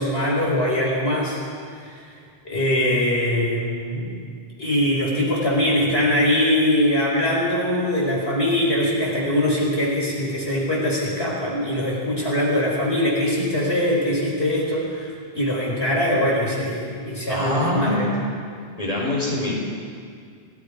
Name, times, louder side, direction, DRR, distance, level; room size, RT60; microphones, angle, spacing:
voice 1, 0.0-1.4 1.8-2.0 2.4-4.1 4.6-18.1, left 1 dB, 80° left, -4 dB, 5.5 m, -22 dB
voice 2, 17.3-18.0 18.8-19.5, left 1 dB, 35° left, -3 dB, 4.7 m, -24 dB
29.0 x 17.0 x 5.2 m, 2.2 s
omnidirectional pair, 1.1 m